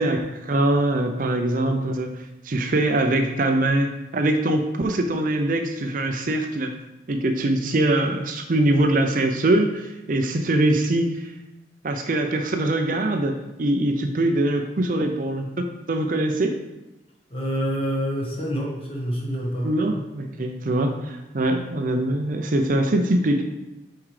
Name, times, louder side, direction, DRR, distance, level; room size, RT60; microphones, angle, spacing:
voice 1, 0.0-2.1 2.4-6.7 7.1-11.3 11.8-15.5 15.9-16.6 19.6-23.4, right 1 dB, 50° right, 5 dB, 0.5 m, -23 dB
voice 2, 17.3-19.7, equal, 30° left, -2 dB, 1.4 m, -27 dB
7.2 x 4.6 x 3.3 m, 0.98 s
head